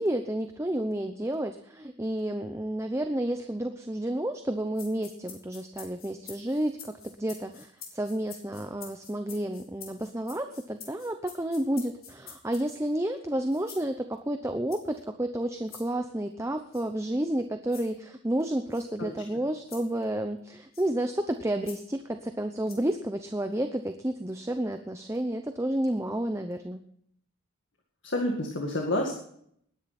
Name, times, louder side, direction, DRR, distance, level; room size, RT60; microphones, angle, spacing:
voice 1, 0.0-26.8, right 1 dB, 15° right, 7 dB, 0.7 m, -31 dB
sound 1, 4.7-12.9 13.5-13.9 14.7-15.0 15.7-15.9 16.7-16.9 17.7-17.9 18.7-18.8 19.7-19.9 20.7-20.9 21.6-21.8 22.7-22.9, left 7 dB, 80° left, 4.2 m, -47 dB
voice 2, 28.1-29.1, left 1 dB, 60° left, 2 dB, 2.1 m, -28 dB
19.5 x 10.5 x 4.3 m, 0.67 s
head